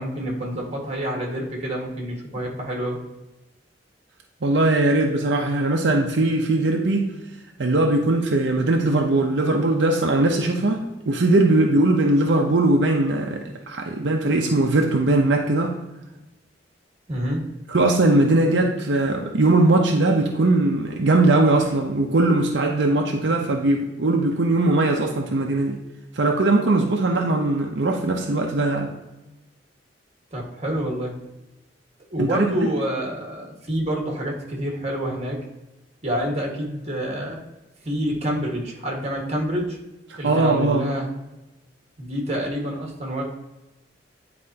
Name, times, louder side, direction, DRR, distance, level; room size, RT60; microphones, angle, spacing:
voice 1, 0.0-3.0 17.1-17.4 30.3-31.1 32.1-35.4 36.0-37.4 37.8-39.8 40.2-41.1 42.0-43.2, equal, 35° right, 0 dB, 1.6 m, -27 dB
voice 2, 4.4-7.1 7.6-15.8 17.7-25.8 26.1-28.9 32.2-32.7 40.1-40.9, right 2 dB, 75° right, 1 dB, 0.7 m, -20 dB
9.7 x 4.3 x 2.8 m, 1.0 s
head